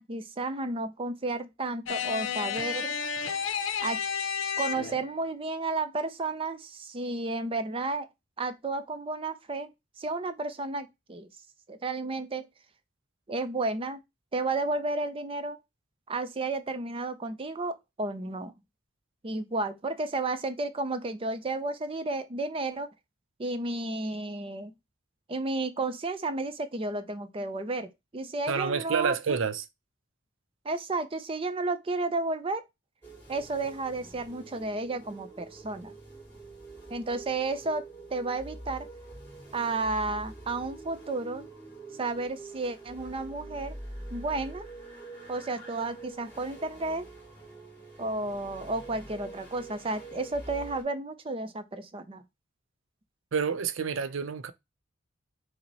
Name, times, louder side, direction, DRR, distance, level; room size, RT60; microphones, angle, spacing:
voice 1, 0.0-3.0 3.8-4.0 4.6-8.1 8.4-9.7 10.0-11.3 11.7-12.5 13.3-14.0 14.3-15.6 16.1-18.5 19.2-22.9 23.4-24.7 25.3-29.4 30.6-32.6 33.3-35.9 36.9-37.8 38.1-38.9 39.5-41.5 41.9-43.8 44.1-44.7 45.3-47.1 48.0-52.2, right 2 dB, 30° right, 0.5 m, -32 dB
sound 1, 1.9-5.1, left 7 dB, 80° left, 0.6 m, -31 dB
voice 2, 28.5-29.7 53.3-54.5, right 6 dB, 80° right, 0.5 m, -28 dB
sound 2, 33.0-50.8, right 2 dB, 10° left, 2.3 m, -45 dB
5.7 x 2.1 x 4.0 m
head